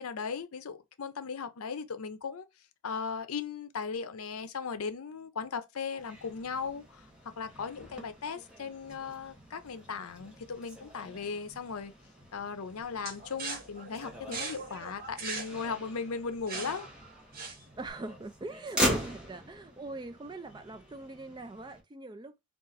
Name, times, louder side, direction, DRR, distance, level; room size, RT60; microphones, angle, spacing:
voice 1, 0.0-2.4 2.8-7.1 7.4-11.9 12.3-16.9, left 5 dB, 80° left, 0.6 m, -37 dB
Motor vehicle (road), 6.0-21.8, equal, 5° right, 1.0 m, -40 dB
sound 1, 13.0-17.9, right 4 dB, 40° right, 0.9 m, -40 dB
voice 2, 17.8-22.4, right 2 dB, 20° right, 0.3 m, -42 dB
3.8 x 2.4 x 3.9 m
head